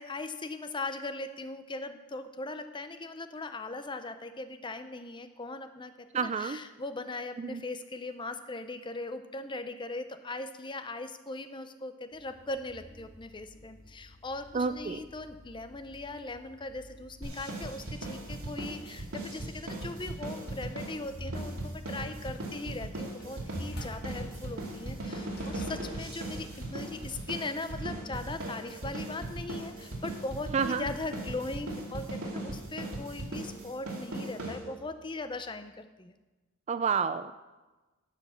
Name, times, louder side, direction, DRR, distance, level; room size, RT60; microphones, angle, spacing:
voice 1, 0.0-36.1, left 2 dB, 20° left, 9 dB, 0.6 m, -39 dB
voice 2, 6.1-6.6 7.4-7.6 14.5-15.0 30.5-30.8 36.7-37.3, right 5 dB, 30° right, 12 dB, 0.3 m, -29 dB
sound 1, 12.1-27.6, equal, 50° left, 1.5 m, -48 dB
sound 2, 17.2-35.0, right 2 dB, 85° right, 2.5 m, -38 dB
11.0 x 5.9 x 7.0 m, 1.2 s
head